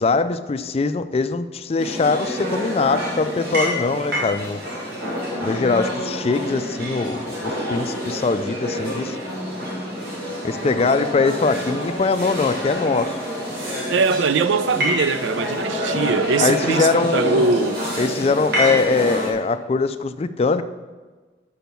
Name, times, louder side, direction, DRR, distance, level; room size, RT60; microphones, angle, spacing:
voice 1, 0.0-4.6 5.4-9.2 10.4-13.2 16.4-17.5 18.0-20.6, left 4 dB, 35° left, 0.3 m, -22 dB
sound 1, 1.8-19.3, equal, 60° right, 2.0 m, -27 dB
voice 2, 13.9-17.8, right 4 dB, 90° right, 0.4 m, -21 dB
6.0 x 5.6 x 6.9 m
head